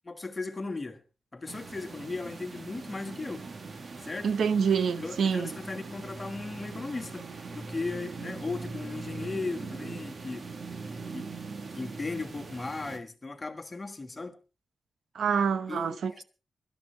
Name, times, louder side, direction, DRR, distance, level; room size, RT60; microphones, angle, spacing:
voice 1, 0.0-1.0 1.3-3.5 4.0-4.3 5.0-10.5 11.1-11.3 11.7-14.3 15.7-16.2, left 3 dB, 25° left, 1.5 m, -37 dB
sound 1, 1.5-13.0, right 4 dB, 40° right, 1.1 m, -41 dB
voice 2, 4.2-5.5 15.1-16.2, right 6 dB, 80° right, 0.8 m, -26 dB
24.0 x 12.5 x 3.2 m
wide cardioid pair, 160°, 0 cm